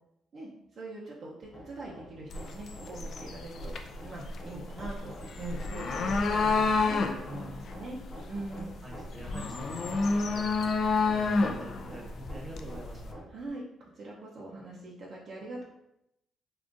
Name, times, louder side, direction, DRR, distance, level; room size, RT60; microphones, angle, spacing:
voice 1, 0.3-3.7 4.0-8.0 8.2-8.8 13.3-13.6 14.0-15.6, right 2 dB, 55° right, -4 dB, 0.6 m, -42 dB
Hammer, 1.4-13.5, equal, 25° left, 1.2 m, -50 dB
sound 1, 2.3-13.1, left 3 dB, 60° left, 0.3 m, -30 dB
voice 2, 8.8-13.2, right 2 dB, 25° right, -1 dB, 0.9 m, -46 dB
3.6 x 2.4 x 2.5 m, 0.84 s
cardioid pair, 90°, 0 cm